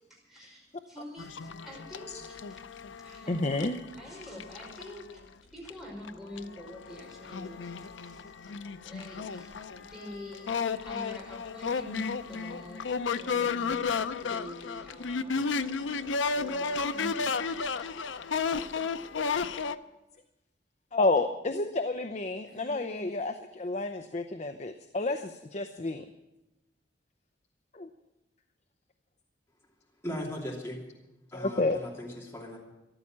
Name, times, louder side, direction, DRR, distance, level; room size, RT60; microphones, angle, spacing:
voice 1, 0.0-2.4 2.9-3.7 4.0-5.2 5.5-13.9 14.2-15.3 16.3-17.9 22.5-23.0, left 1 dB, ahead, 5.2 m, -46 dB
sound 1, 1.2-5.1 5.7-5.8 6.0-19.8, left 5 dB, 90° left, 0.6 m, -33 dB
voice 2, 3.3-3.8 4.1-4.2 20.9-26.1 27.7-27.9 31.3-31.9, left 2 dB, 40° left, 0.6 m, -30 dB
voice 3, 30.0-30.8 31.3-32.6, equal, 15° left, 2.7 m, -38 dB
14.0 x 12.0 x 7.4 m
head